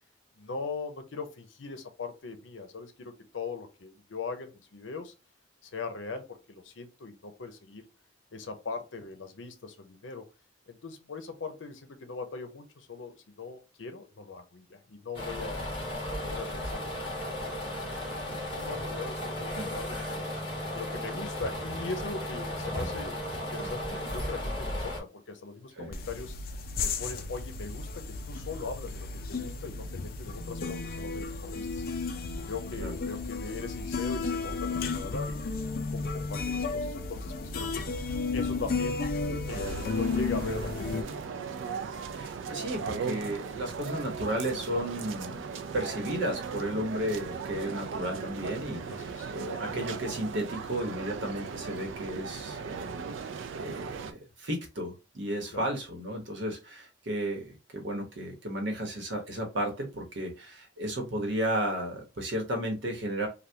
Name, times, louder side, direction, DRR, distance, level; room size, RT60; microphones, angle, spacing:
voice 1, 0.4-5.1 5.6-7.8 8.3-10.3 10.7-15.7 16.1-20.3 20.7-26.4 26.8-31.9 32.4-35.4 35.9-39.0 39.5-41.5 48.9-49.4 55.5-55.7, left 4 dB, 90° left, 0.6 m, -40 dB
sound 1, 15.1-25.0, left 1 dB, 30° left, 1.4 m, -35 dB
sound 2, 25.9-41.0, left 4 dB, 50° left, 0.4 m, -33 dB
sound 3, 39.5-54.1, right 5 dB, 90° right, 0.4 m, -38 dB
voice 2, 42.1-45.4 45.7-63.3, right 1 dB, 75° right, 1.0 m, -34 dB
3.3 x 2.3 x 2.7 m
head